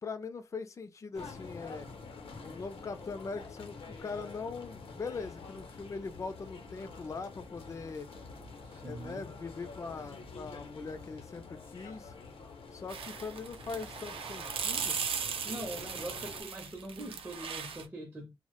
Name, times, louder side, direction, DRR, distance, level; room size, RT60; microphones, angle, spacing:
voice 1, 0.0-1.9 2.4-8.1 8.8-12.1 12.7-15.0, left 4 dB, 35° left, 0.3 m, -41 dB
sound 1, 1.1-16.4, left 4 dB, 80° left, 0.6 m, -48 dB
voice 2, 8.6-9.3 15.4-18.3, right 1 dB, 20° right, 0.5 m, -42 dB
sound 2, 12.9-17.9, right 6 dB, 85° right, 0.5 m, -37 dB
2.1 x 2.0 x 2.9 m
wide cardioid pair, 145°, 9 cm